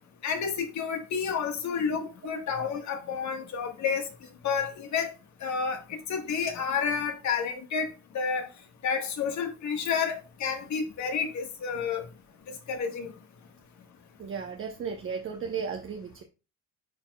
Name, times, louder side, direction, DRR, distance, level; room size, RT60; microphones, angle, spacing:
voice 1, 0.2-4.1 4.4-5.1 5.4-7.9 8.1-8.5 8.8-12.0 12.7-13.1, left 6 dB, 55° left, 1.5 m, -30 dB
voice 2, 14.2-16.2, right 6 dB, 40° right, 0.9 m, -35 dB
9.8 x 4.4 x 2.3 m
supercardioid pair, 85°, 33 cm